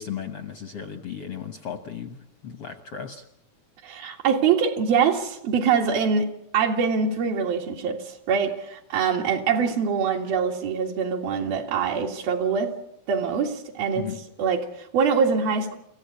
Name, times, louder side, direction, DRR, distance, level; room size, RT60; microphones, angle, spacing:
voice 1, 0.0-3.2 13.9-14.2, left 7 dB, 70° left, 7 dB, 1.4 m, -35 dB
voice 2, 3.8-6.3 6.5-12.7 13.1-14.1 14.4-15.8, right 6 dB, 80° right, -1 dB, 3.8 m, -24 dB
29.5 x 15.0 x 8.4 m, 0.83 s
omnidirectional pair, 4.2 m